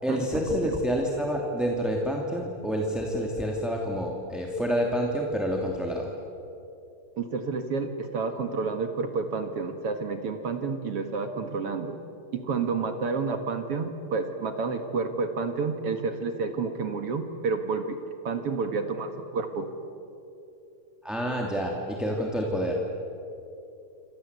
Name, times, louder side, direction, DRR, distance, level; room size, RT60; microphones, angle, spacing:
voice 1, 0.0-6.1 21.0-22.8, equal, ahead, -1 dB, 2.0 m, -28 dB
voice 2, 7.2-12.0 12.3-19.7, right 4 dB, 50° right, 6 dB, 2.2 m, -30 dB
28.5 x 25.5 x 8.2 m, 2.8 s
omnidirectional pair, 3.9 m